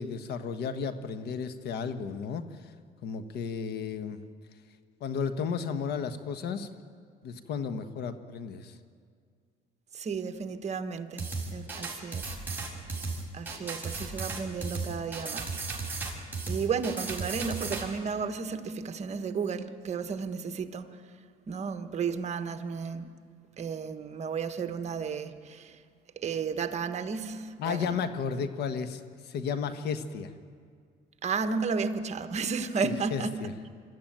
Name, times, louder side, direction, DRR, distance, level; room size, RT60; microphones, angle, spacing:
voice 1, 0.0-2.5 3.0-4.2 5.0-6.7 7.2-8.8 27.6-30.3 32.8-33.5, left 6 dB, 75° left, 9 dB, 1.3 m, -33 dB
voice 2, 9.9-12.3 13.3-15.6 16.5-21.0 21.5-23.1 23.6-25.8 26.2-27.9 31.2-33.4, right 5 dB, 40° right, 8 dB, 1.3 m, -33 dB
spacked out, 11.2-17.8, right 3 dB, 10° right, 5.8 m, -35 dB
25.0 x 13.5 x 9.1 m, 2.1 s
cardioid pair, 110°, 17 cm